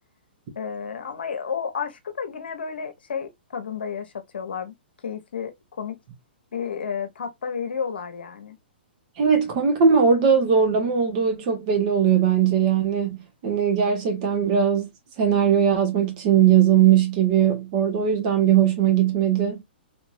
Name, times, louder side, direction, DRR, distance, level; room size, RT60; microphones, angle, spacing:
voice 1, 0.5-4.7 5.0-5.5 5.8-6.0 6.5-8.6, left 6 dB, 70° left, 0.9 m, -31 dB
voice 2, 9.2-13.2 13.4-14.9 15.2-19.6, right 8 dB, 45° right, 1.3 m, -19 dB
3.3 x 3.0 x 2.6 m
hypercardioid pair, 120°, 6 cm